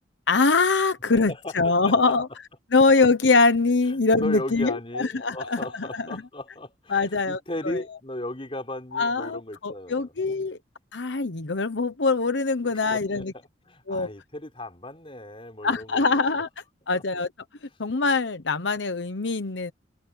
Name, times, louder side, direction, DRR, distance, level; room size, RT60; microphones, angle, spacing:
voice 1, 0.3-2.3 2.7-5.9 6.9-7.4 7.6-7.8 8.9-10.6 10.9-13.3 13.9-14.1 15.6-16.5 16.9-17.3 17.8-19.7, left 3 dB, 85° left, 1.0 m, -23 dB
voice 2, 1.1-2.2 3.9-10.1 10.5-10.6 12.8-16.2 16.9-17.0, left 1 dB, 30° left, 4.5 m, -36 dB
head